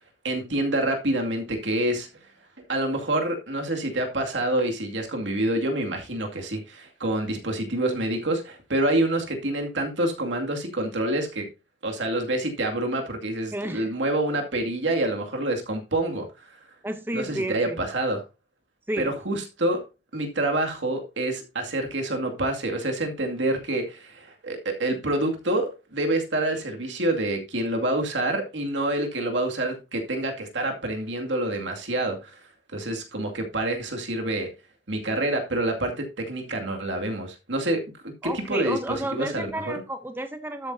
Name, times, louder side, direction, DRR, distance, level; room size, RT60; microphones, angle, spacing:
voice 1, 0.2-2.1 2.6-11.5 11.8-16.3 17.1-18.2 19.0-19.8 20.1-32.4 32.7-34.5 34.9-39.5, right 1 dB, 80° right, 2.3 m, -27 dB
voice 2, 13.5-13.9 16.8-17.8 18.9-19.2 38.2-40.7, right 1 dB, 10° right, 0.7 m, -31 dB
12.5 x 8.2 x 2.8 m
head